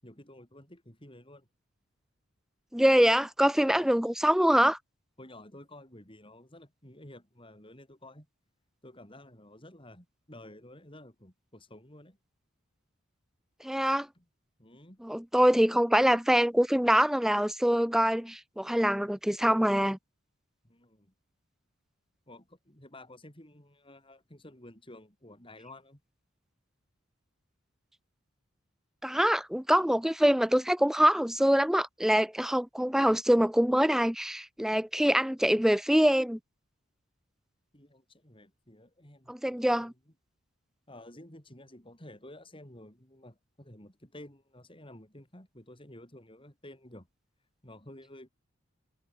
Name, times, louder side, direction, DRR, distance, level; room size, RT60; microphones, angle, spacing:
voice 1, 0.0-1.5 3.6-3.9 5.2-8.3 8.8-12.2 14.2-14.3 14.6-15.0 20.6-21.1 22.3-26.0 37.7-39.9 40.9-47.1 47.6-48.3, left 1 dB, 25° left, 7.7 m, -51 dB
voice 2, 2.7-4.8 13.6-14.1 15.0-20.0 29.0-36.4 39.3-39.9, equal, ahead, 0.5 m, -24 dB
head